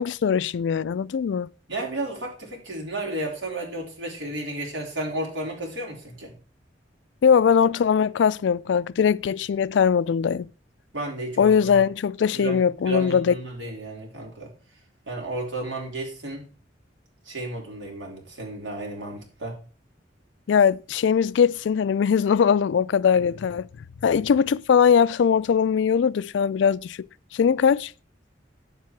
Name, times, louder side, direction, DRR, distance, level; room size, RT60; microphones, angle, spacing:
voice 1, 0.0-1.5 7.2-10.5 11.4-13.3 20.5-23.7 24.0-27.0 27.3-27.9, left 7 dB, 70° left, 0.3 m, -21 dB
voice 2, 1.7-6.4 10.9-11.8 12.3-14.5 15.1-16.5 17.3-19.6, right 2 dB, 85° right, 3.6 m, -33 dB
9.4 x 7.5 x 4.6 m
head